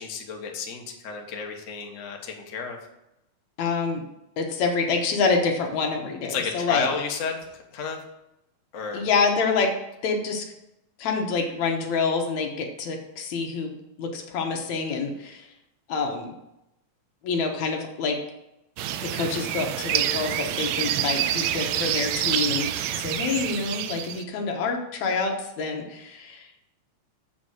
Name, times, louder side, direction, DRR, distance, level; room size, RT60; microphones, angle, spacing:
voice 1, 0.0-2.8 6.3-8.0 8.7-9.0, left 5 dB, 55° left, 2 dB, 0.8 m, -31 dB
voice 2, 3.6-4.0 4.4-6.9 8.9-9.7 10.0-10.5 11.0-15.5 15.9-16.3 17.2-18.2 19.0-26.6, left 4 dB, 75° left, 3 dB, 2.5 m, -27 dB
sound 1, 18.8-24.2, right 11 dB, 80° right, 1.7 m, -27 dB
7.4 x 6.1 x 6.4 m, 0.87 s
omnidirectional pair, 3.4 m